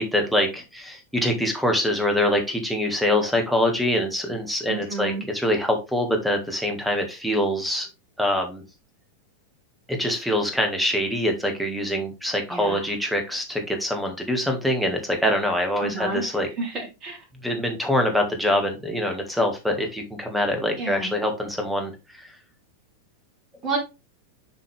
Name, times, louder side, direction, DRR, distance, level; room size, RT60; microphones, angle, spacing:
voice 1, 0.0-7.9 8.2-8.6 9.9-16.5 17.4-22.4, left 1 dB, ahead, 1.7 m, -24 dB
voice 2, 4.7-5.2 12.5-12.8 15.8-16.3 16.6-17.2 20.8-21.1 23.6-23.8, right 3 dB, 30° right, 3.2 m, -30 dB
7.1 x 4.6 x 3.4 m
figure-of-eight pair, 90°, 0 cm